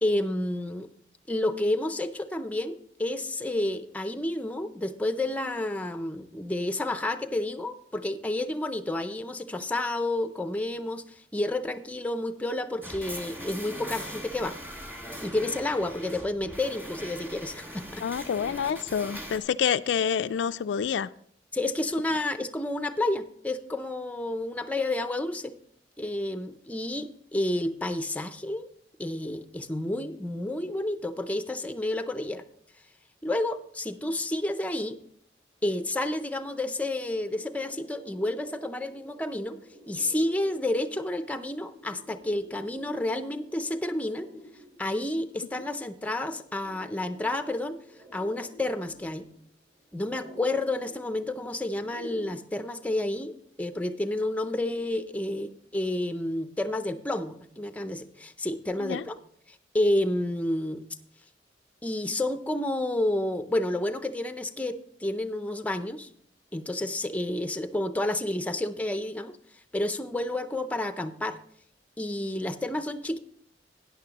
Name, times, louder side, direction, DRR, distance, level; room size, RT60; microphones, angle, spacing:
voice 1, 0.0-0.9 1.3-14.6 15.2-18.0 21.5-25.6 26.0-28.7 29.0-32.4 33.2-35.0 35.6-39.6 39.9-44.3 44.8-47.8 48.1-49.3 49.9-59.2 59.7-60.8 61.8-66.1 66.5-69.4 69.7-71.4 72.0-73.2, left 1 dB, 10° left, 0.5 m, -30 dB
sound 1, 12.8-19.4, equal, 10° right, 1.7 m, -40 dB
voice 2, 18.0-21.1 58.8-59.0, left 7 dB, 85° left, 0.3 m, -27 dB
sound 2, 35.7-35.8 36.1-52.3, left 1 dB, 40° right, 4.1 m, -51 dB
13.0 x 9.5 x 2.9 m
head